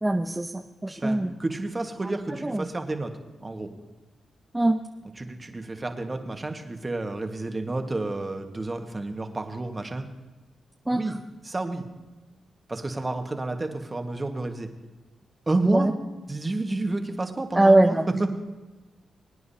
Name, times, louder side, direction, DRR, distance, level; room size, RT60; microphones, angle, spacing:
voice 1, 0.0-1.3 2.4-2.7 4.5-4.8 10.9-11.0 15.7-15.9 17.6-18.0, right 1 dB, 15° right, 4 dB, 0.8 m, -21 dB
voice 2, 1.0-3.1 3.4-3.7 5.2-10.1 10.9-11.2 11.4-11.9 12.7-14.7 15.5-15.9 16.3-18.3, right 2 dB, 30° right, 5 dB, 1.6 m, -30 dB
23.0 x 9.5 x 2.8 m, 1.2 s
supercardioid pair, 45°, 0 cm